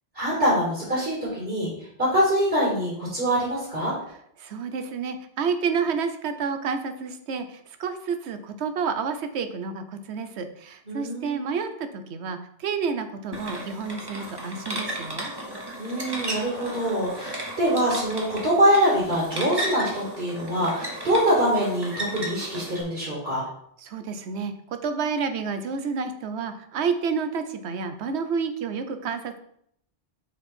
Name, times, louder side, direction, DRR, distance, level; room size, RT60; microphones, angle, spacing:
voice 1, 0.1-1.7 2.0-3.9 10.9-11.4 15.8-23.4, equal, 60° right, -6 dB, 2.5 m, -24 dB
voice 2, 4.4-15.3 23.8-24.5 24.8-29.4, right 5 dB, 80° right, 8 dB, 1.0 m, -29 dB
sound 1, 13.3-22.8, right 1 dB, 25° right, 1.1 m, -35 dB
5.8 x 4.4 x 4.3 m, 0.70 s
omnidirectional pair, 1.1 m